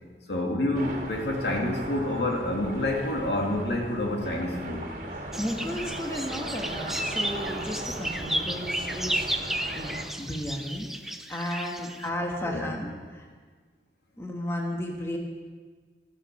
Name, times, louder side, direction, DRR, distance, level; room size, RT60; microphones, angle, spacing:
voice 1, 0.3-4.9 12.4-12.8, left 1 dB, 75° left, 0 dB, 2.4 m, -28 dB
sound 1, 0.7-10.0, right 1 dB, 45° right, 1.9 m, -38 dB
sound 2, 5.3-12.1, right 1 dB, ahead, 0.5 m, -33 dB
voice 2, 5.4-10.9 11.3-13.3 14.2-15.2, left 1 dB, 15° left, 1 dB, 1.4 m, -34 dB
15.5 x 13.5 x 4.8 m, 1.5 s
head